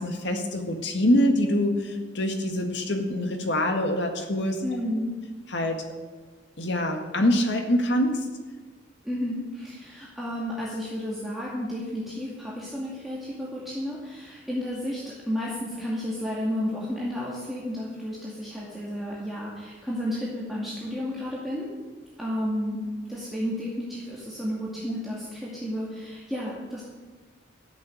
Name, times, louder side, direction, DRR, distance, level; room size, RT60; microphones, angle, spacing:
voice 1, 0.0-4.6 5.5-5.9 6.6-8.3, left 1 dB, 70° left, 4 dB, 1.9 m, -25 dB
voice 2, 4.6-5.2 9.0-21.7 22.2-26.8, equal, ahead, -7 dB, 2.4 m, -32 dB
12.5 x 7.7 x 9.0 m, 1.4 s
head